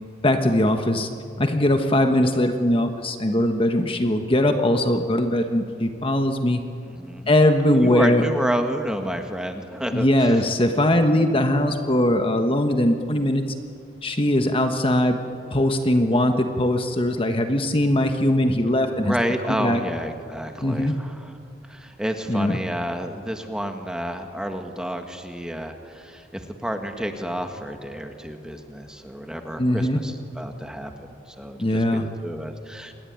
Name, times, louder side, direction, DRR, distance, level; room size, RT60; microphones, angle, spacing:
voice 1, 0.2-1.1 1.4-6.6 7.3-8.3 9.9-13.4 14.0-15.2 15.5-19.1 19.5-19.8 20.6-21.0 22.3-22.6 29.6-30.0 31.6-32.1, left 1 dB, 30° left, 6 dB, 1.3 m, -20 dB
voice 2, 6.9-7.4 7.7-10.4 19.0-21.3 21.7-31.1 31.4-32.9, equal, 5° right, 5 dB, 1.8 m, -30 dB
27.5 x 20.5 x 9.5 m, 2.4 s
head